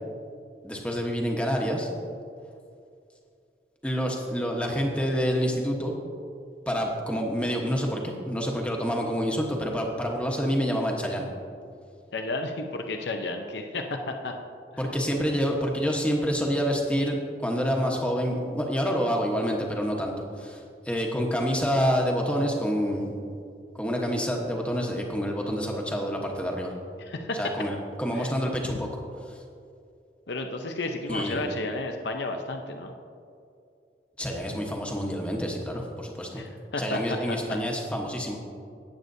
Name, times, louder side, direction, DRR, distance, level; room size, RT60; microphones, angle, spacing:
voice 1, 0.6-1.9 3.8-5.9 6.7-11.3 14.8-23.2 23.8-26.7 27.4-28.9 29.3-29.4 31.1-31.4 34.2-36.4 36.8-38.4, equal, 5° left, 0 dB, 1.1 m, -27 dB
voice 2, 12.1-14.3 27.0-27.4 28.1-28.3 28.7-28.8 30.3-32.9 36.3-37.6, left 2 dB, 75° left, 4 dB, 0.7 m, -32 dB
17.0 x 7.8 x 2.7 m, 2.5 s
head